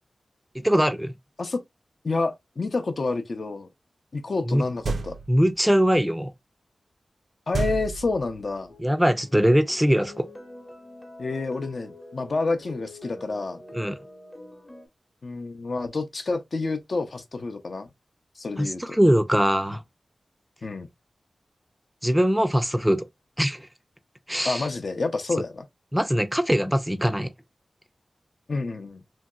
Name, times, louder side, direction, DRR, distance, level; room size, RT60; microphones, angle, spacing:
voice 1, 0.5-1.1 4.5-4.6 5.3-6.3 8.8-10.3 13.7-14.0 18.6-19.8 22.0-23.1 23.4-23.7 24.3-24.7 25.9-27.3, equal, 5° right, 0.3 m, -22 dB
voice 2, 2.0-3.7 4.1-5.2 7.5-8.7 11.2-13.6 15.2-17.9 18.4-19.0 20.6-20.9 24.4-25.6 28.5-29.0, left 3 dB, 60° left, 0.5 m, -29 dB
sound 1, 4.8-5.5 7.5-8.5, right 3 dB, 85° right, 0.4 m, -30 dB
sound 2, 8.7-14.9, left 1 dB, 25° left, 0.8 m, -45 dB
3.0 x 2.7 x 2.2 m
wide cardioid pair, 105°, 0 cm